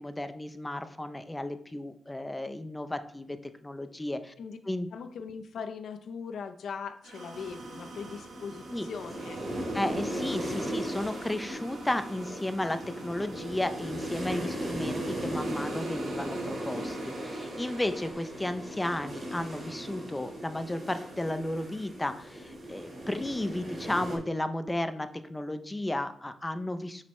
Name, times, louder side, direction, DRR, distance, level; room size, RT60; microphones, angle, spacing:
voice 1, 0.0-4.3 4.7-4.9 8.7-8.9 9.7-27.0, left 1 dB, 10° left, 10 dB, 0.5 m, -33 dB
voice 2, 4.9-9.4, left 6 dB, 65° left, 8 dB, 0.6 m, -40 dB
sound 1, 7.0-18.1, right 3 dB, 80° right, 1.8 m, -47 dB
sound 2, 7.3-24.2, right 1 dB, 35° right, 3.1 m, -37 dB
7.4 x 6.1 x 3.1 m, 0.63 s
cardioid pair, 125°, 0 cm